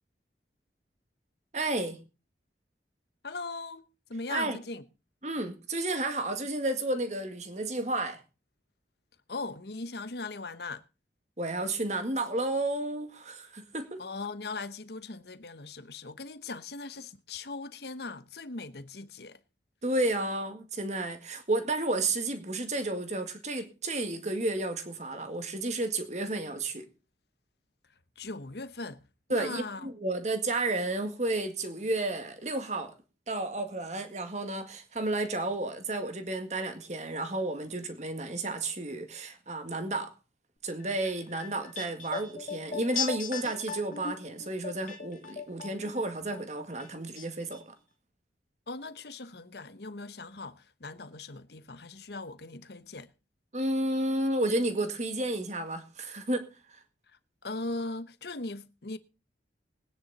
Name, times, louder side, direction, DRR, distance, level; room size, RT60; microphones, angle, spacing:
voice 1, 1.5-2.0 4.3-4.6 5.2-8.2 11.4-14.0 19.8-26.9 29.3-32.9 33.3-40.1 40.6-47.8 53.5-56.8, right 2 dB, 40° right, 1.9 m, -32 dB
voice 2, 3.2-3.8 4.1-4.8 9.3-10.8 14.0-19.4 28.2-29.0 29.3-29.9 48.7-53.1 57.1-59.0, left 3 dB, 65° left, 1.0 m, -39 dB
sound 1, 40.8-46.0 46.3-47.3 47.5-47.6, left 7 dB, 45° left, 1.8 m, -38 dB
20.0 x 9.8 x 4.1 m
head